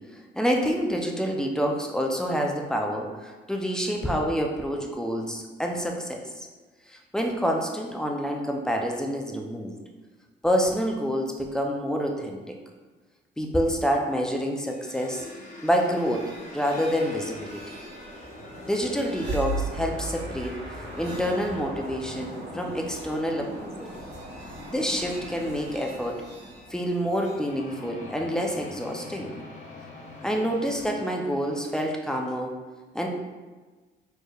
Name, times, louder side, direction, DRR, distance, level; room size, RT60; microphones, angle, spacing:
voice 1, 0.3-6.5 6.9-9.7 10.4-12.4 13.4-15.3 15.6-17.8 18.6-20.6 21.0-23.7 24.7-26.2 26.7-29.3 30.2-32.5 32.9-33.1, equal, 5° left, 1 dB, 0.5 m, -27 dB
sound 1, 14.6-27.4, right 2 dB, 60° right, 1.3 m, -39 dB
sound 2, 14.8-31.8, left 2 dB, 40° left, 0.7 m, -44 dB
4.4 x 3.1 x 2.3 m, 1.3 s
cardioid pair, 90°, 20 cm